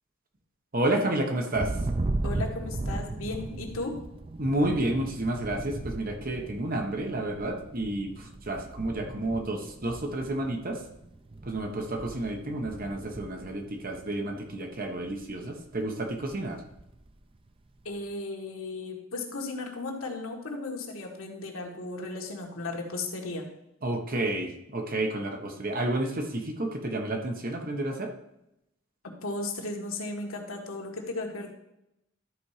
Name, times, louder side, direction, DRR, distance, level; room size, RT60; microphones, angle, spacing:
voice 1, 0.7-1.7 4.4-8.1 8.5-10.8 11.5-16.6 23.8-28.1, right 1 dB, 45° right, 3 dB, 1.2 m, -30 dB
Thunder, 1.5-14.4 14.8-15.3 15.7-17.1, right 2 dB, 25° right, 0.5 m, -37 dB
voice 2, 2.2-4.0 17.9-23.5 29.0-31.5, left 2 dB, 75° left, 1 dB, 1.7 m, -35 dB
13.0 x 4.4 x 5.0 m, 0.84 s
head